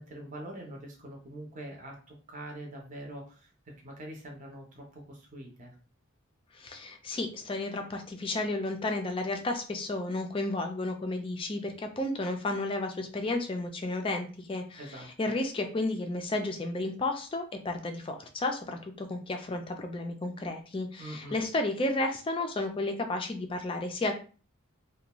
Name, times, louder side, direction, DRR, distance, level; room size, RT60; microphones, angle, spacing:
voice 1, 0.0-5.7 14.8-15.1 21.0-21.4, right 1 dB, 35° right, 0 dB, 0.6 m, -44 dB
voice 2, 6.5-14.8 15.2-24.1, left 2 dB, 25° left, 5 dB, 0.3 m, -32 dB
2.5 x 2.2 x 2.9 m, 0.38 s
head